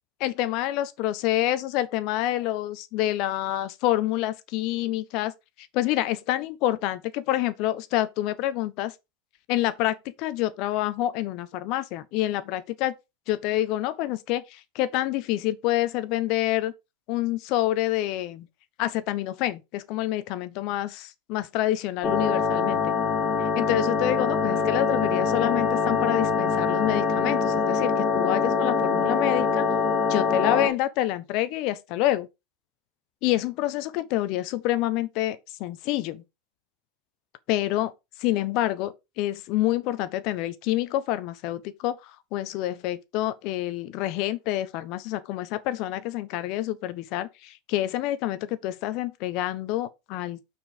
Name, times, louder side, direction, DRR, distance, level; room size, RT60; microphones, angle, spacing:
voice 1, 0.2-5.3 5.7-8.9 9.5-12.9 13.3-16.7 17.1-18.5 18.8-22.8 23.5-29.7 30.1-32.3 33.2-36.2 37.5-37.9 38.2-42.0 42.3-50.4, left 14 dB, 60° left, 1.0 m, -27 dB
sound 1, 22.0-30.7, left 5 dB, 25° left, 1.6 m, -24 dB
6.2 x 4.7 x 5.2 m
hypercardioid pair, 105°, 0 cm